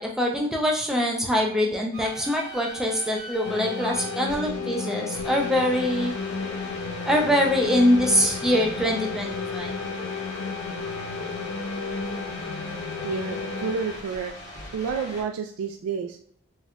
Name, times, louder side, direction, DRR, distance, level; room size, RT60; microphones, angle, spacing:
voice 1, 0.0-6.1 7.0-9.8, equal, ahead, 0 dB, 0.3 m, -23 dB
sound 1, 1.9-15.2, left 1 dB, 15° left, 0.9 m, -39 dB
sound 2, 3.4-13.7, left 4 dB, 70° left, 0.4 m, -33 dB
voice 2, 13.0-14.3 14.7-16.2, right 5 dB, 90° right, 4 dB, 0.3 m, -30 dB
4.3 x 2.2 x 2.3 m, 0.64 s
head